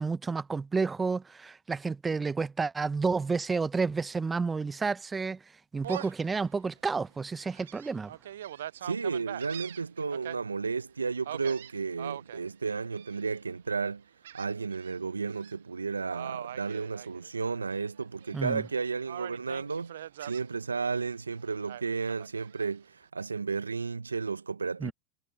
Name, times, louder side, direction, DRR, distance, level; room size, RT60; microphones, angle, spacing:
voice 1, 0.0-5.4 5.7-8.1 18.3-18.6 24.8-24.9, right 4 dB, 20° right, 0.8 m, -30 dB
Gull seagull, 5.8-6.3 6.8-6.9 7.4-10.4 11.3-12.4 12.9-13.4 14.2-14.9 15.3-15.5 16.1-17.6 18.0-18.7 19.1-20.4 21.7-22.7, right 11 dB, 75° right, 0.4 m, -42 dB
voice 2, 8.8-14.0 14.3-24.9, right 4 dB, 90° right, 0.8 m, -33 dB
figure-of-eight pair, 80°, 0 cm